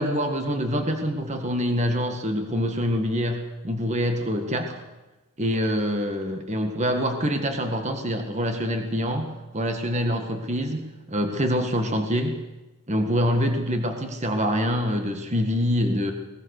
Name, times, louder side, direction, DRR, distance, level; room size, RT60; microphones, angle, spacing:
voice 1, 0.0-4.8 5.4-12.4 12.9-16.1, equal, 30° right, 5 dB, 1.7 m, -25 dB
22.0 x 21.0 x 6.6 m, 1.1 s
head